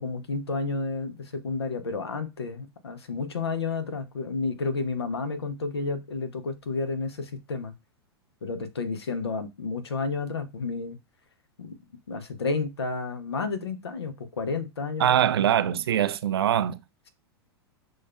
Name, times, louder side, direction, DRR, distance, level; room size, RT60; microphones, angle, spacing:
voice 1, 0.0-7.7 8.4-11.0 11.6-11.8 12.1-15.3, left 4 dB, 75° left, 0.7 m, -31 dB
voice 2, 15.0-16.8, right 10 dB, 70° right, 0.4 m, -23 dB
6.2 x 2.3 x 2.3 m
figure-of-eight pair, 100°, 13 cm